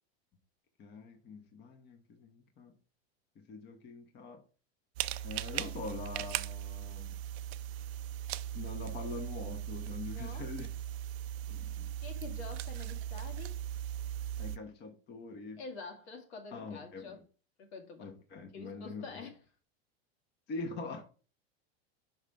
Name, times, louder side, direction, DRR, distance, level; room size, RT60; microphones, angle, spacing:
voice 1, 0.8-2.7 3.3-4.4 5.2-7.2 8.5-10.7 11.5-11.9 14.4-15.6 16.5-17.2 18.0-19.2 20.5-21.0, left 4 dB, 30° left, 1.1 m, -44 dB
sound 1, 5.0-14.6, right 11 dB, 70° right, 0.6 m, -38 dB
voice 2, 10.1-10.5 12.0-13.6 15.6-17.2 17.6-18.1 18.5-19.4, left 4 dB, 80° left, 2.0 m, -47 dB
6.0 x 5.4 x 3.3 m
supercardioid pair, 130°, 32 cm